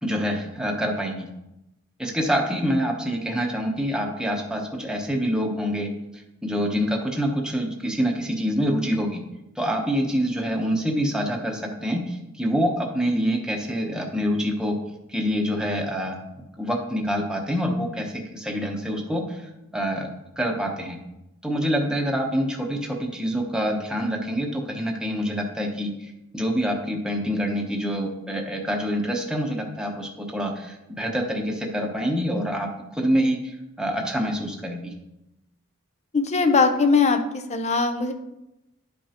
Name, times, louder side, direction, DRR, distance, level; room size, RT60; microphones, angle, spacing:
voice 1, 0.0-1.3 2.0-9.2 9.6-14.8 15.1-16.2 16.6-20.1 20.4-21.0 21.4-34.9, equal, 5° right, 1 dB, 0.9 m, -26 dB
voice 2, 36.1-38.1, left 4 dB, 35° left, 7 dB, 0.6 m, -20 dB
10.5 x 5.3 x 2.9 m, 0.90 s
head